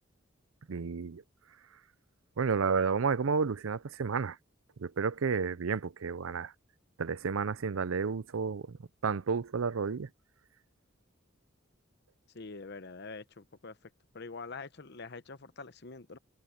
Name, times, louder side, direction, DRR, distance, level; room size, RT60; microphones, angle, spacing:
voice 1, 0.7-1.2 2.4-4.4 4.8-6.5 7.0-8.8 9.0-10.1, right 5 dB, 85° right, 0.6 m, -31 dB
voice 2, 12.3-13.9 14.1-16.2, left 4 dB, 55° left, 1.0 m, -45 dB
head